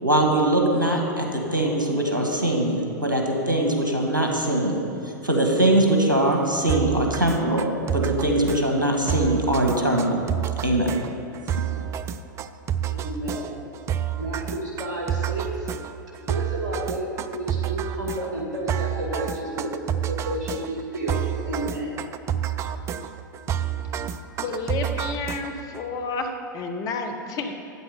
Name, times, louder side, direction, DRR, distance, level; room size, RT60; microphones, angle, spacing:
voice 1, 0.0-7.7 7.9-10.2 10.6-10.9, right 1 dB, 85° right, 1 dB, 1.7 m, -22 dB
sound 1, 6.7-25.8, right 9 dB, 25° right, 0.4 m, -29 dB
voice 2, 12.8-13.6 14.2-15.7 16.3-19.7 20.1-21.9, right 1 dB, 65° right, -2 dB, 2.0 m, -31 dB
voice 3, 24.4-27.5, left 3 dB, 35° left, 5 dB, 1.1 m, -30 dB
12.0 x 8.5 x 5.2 m, 2.9 s
figure-of-eight pair, 95°, 11 cm